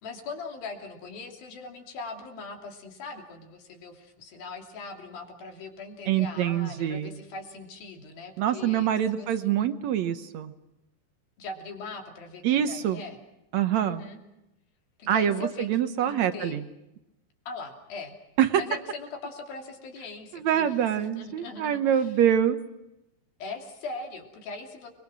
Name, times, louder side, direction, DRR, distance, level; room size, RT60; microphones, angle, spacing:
voice 1, 0.0-9.6 11.4-13.2 13.8-14.2 15.0-15.7 16.0-16.6 17.5-18.1 18.6-20.8 21.2-22.1 23.4-24.9, left 4 dB, 75° left, 2 dB, 4.7 m, -40 dB
voice 2, 6.1-7.2 8.4-10.5 12.4-13.0 13.5-14.1 15.1-16.6 18.4-18.6 20.3-22.6, right 10 dB, 70° right, 9 dB, 1.8 m, -25 dB
30.0 x 22.5 x 6.1 m, 0.91 s
omnidirectional pair, 4.2 m